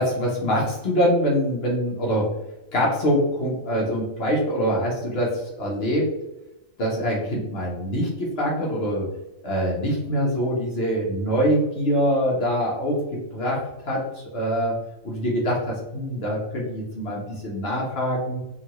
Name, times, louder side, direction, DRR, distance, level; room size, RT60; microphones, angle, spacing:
voice 1, 0.0-2.3 2.7-6.1 6.8-9.0 9.4-13.0 13.3-14.7 15.0-18.4, equal, 55° left, -3 dB, 1.0 m, -24 dB
3.7 x 2.2 x 2.9 m, 0.95 s
omnidirectional pair, 1.4 m